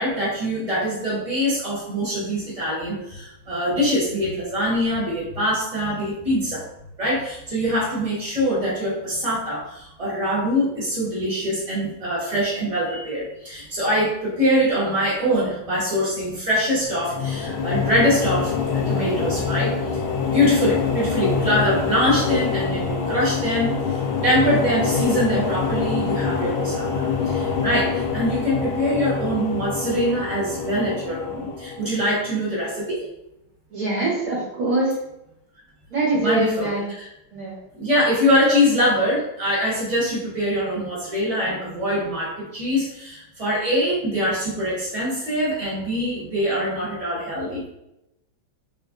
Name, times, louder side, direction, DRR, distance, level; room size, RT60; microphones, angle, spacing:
voice 1, 0.0-6.6 7.0-19.7 20.3-33.0 36.1-37.1 37.7-47.7, equal, 25° right, -6 dB, 0.8 m, -23 dB
sound 1, 16.8-32.1, left 5 dB, 75° left, 0.9 m, -25 dB
voice 2, 33.7-34.9 35.9-36.8 37.3-37.5, right 2 dB, 55° right, -6 dB, 1.0 m, -23 dB
3.2 x 2.9 x 2.5 m, 0.86 s
omnidirectional pair, 2.2 m